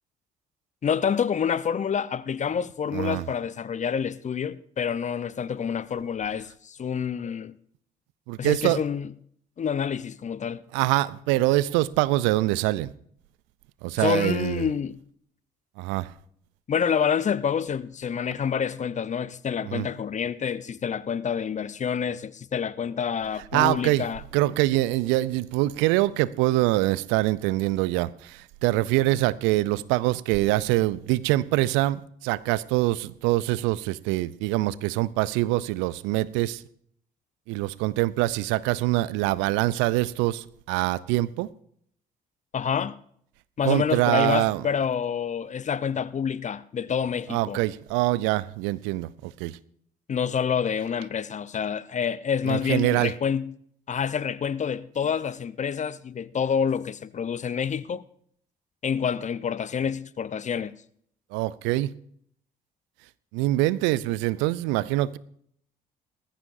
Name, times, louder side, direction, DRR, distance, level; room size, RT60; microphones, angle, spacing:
voice 1, 0.8-7.5 8.4-9.1 9.6-10.6 14.0-15.0 16.7-24.2 42.5-43.0 43.6-47.6 50.1-53.5 53.9-58.0 58.8-60.8, left 7 dB, 35° left, 0.7 m, -27 dB
voice 2, 2.9-3.2 8.3-8.8 10.7-12.9 13.8-14.7 15.8-16.1 19.6-19.9 23.5-24.1 24.3-36.6 37.5-41.5 43.6-44.6 47.3-49.6 52.4-53.1 61.3-61.9 63.3-65.2, right 17 dB, 70° right, 0.5 m, -24 dB
19.5 x 14.0 x 2.6 m
hypercardioid pair, 50°, 20 cm